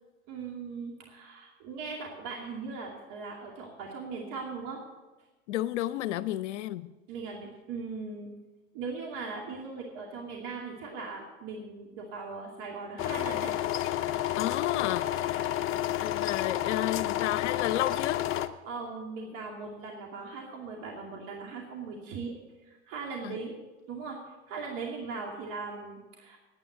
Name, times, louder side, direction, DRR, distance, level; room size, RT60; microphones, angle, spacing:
voice 1, 0.3-4.8 7.1-8.3 8.7-13.5 18.6-22.4 22.6-23.6 23.9-24.2 24.5-26.4, right 4 dB, 55° right, -1 dB, 2.5 m, -39 dB
voice 2, 5.5-6.9 14.4-15.1 16.0-18.2 23.2-23.4, left 14 dB, 75° left, 15 dB, 0.7 m, -31 dB
sound 1, 13.0-18.5, left 13 dB, 35° left, 0.7 m, -30 dB
9.9 x 8.9 x 7.8 m, 1.1 s
hypercardioid pair, 100°, 36 cm